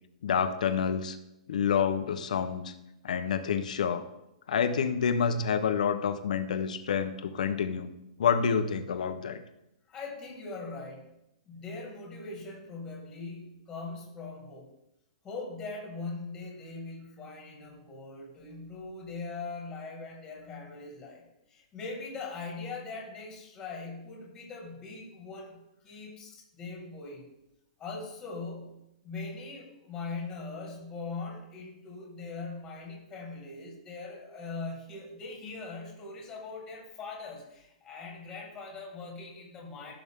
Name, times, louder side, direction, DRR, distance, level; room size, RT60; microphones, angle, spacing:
voice 1, 0.2-1.2 1.5-2.7 3.0-4.0 4.5-7.9 8.2-9.4, left 7 dB, 75° left, 9 dB, 0.9 m, -28 dB
voice 2, 9.9-11.1 11.5-14.7 15.2-27.3 27.8-39.9, left 3 dB, 15° left, -1 dB, 2.0 m, -41 dB
15.0 x 6.1 x 3.7 m, 0.86 s
hypercardioid pair, 170°, 4 cm